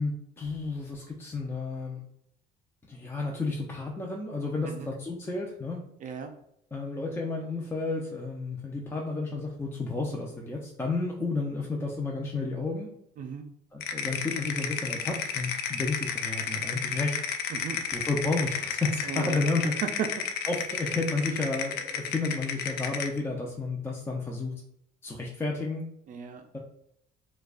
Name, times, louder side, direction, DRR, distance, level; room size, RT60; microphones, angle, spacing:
voice 1, 0.0-2.0 2.9-5.8 6.7-12.9 13.7-17.2 17.9-19.7 20.5-24.5 25.0-25.9, left 3 dB, 15° left, -1 dB, 0.5 m, -31 dB
voice 2, 6.0-6.3 13.2-13.4 17.5-17.8 19.1-20.1 26.1-26.5, right 7 dB, 50° right, 5 dB, 0.4 m, -35 dB
sound 1, 13.8-23.2, left 7 dB, 75° left, 0.5 m, -32 dB
4.6 x 2.3 x 2.4 m, 0.73 s
cardioid pair, 110°, 17 cm